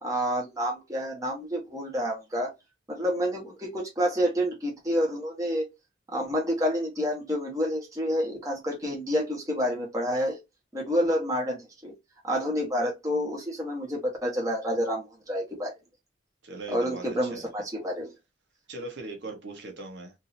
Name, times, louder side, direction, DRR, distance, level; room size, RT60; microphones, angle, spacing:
voice 1, 0.0-2.5 2.9-5.6 6.1-10.4 10.7-11.9 12.2-15.7 16.7-18.1, equal, 15° right, 1.3 m, -28 dB
voice 2, 16.4-17.5 18.7-20.1, right 2 dB, 65° right, 1.2 m, -39 dB
3.7 x 2.7 x 2.7 m
head